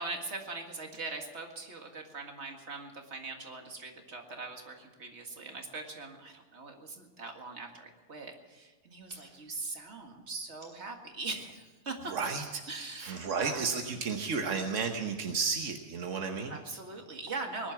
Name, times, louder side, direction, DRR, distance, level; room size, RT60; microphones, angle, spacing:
voice 1, 0.0-12.2 12.7-13.7 16.5-17.7, right 3 dB, 65° right, 3 dB, 2.2 m, -41 dB
sound 1, 8.8-11.0 11.4-11.8 12.1-15.3, right 1 dB, 40° right, 4.0 m, -60 dB
voice 2, 12.1-12.6 13.0-16.6, right 5 dB, 90° right, 4 dB, 1.4 m, -32 dB
20.0 x 11.0 x 5.9 m, 1.4 s
omnidirectional pair, 1.2 m